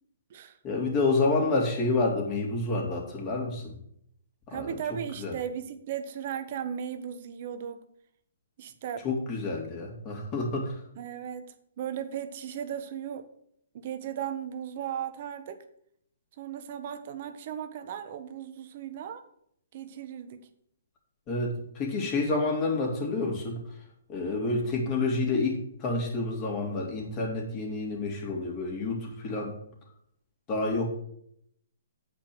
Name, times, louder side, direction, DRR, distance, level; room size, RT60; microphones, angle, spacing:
voice 1, 0.6-3.8 4.5-4.8 5.2-5.4 9.0-10.8 21.3-23.6 24.1-29.5 30.5-30.9, left 3 dB, 30° left, 0 dB, 2.7 m, -29 dB
voice 2, 4.5-7.8 8.6-9.0 11.0-11.5 11.8-13.3 13.7-15.6 16.4-19.2 19.7-20.4, right 9 dB, 45° right, 10 dB, 1.0 m, -36 dB
8.8 x 5.2 x 6.1 m, 0.70 s
hypercardioid pair, 145°, 0 cm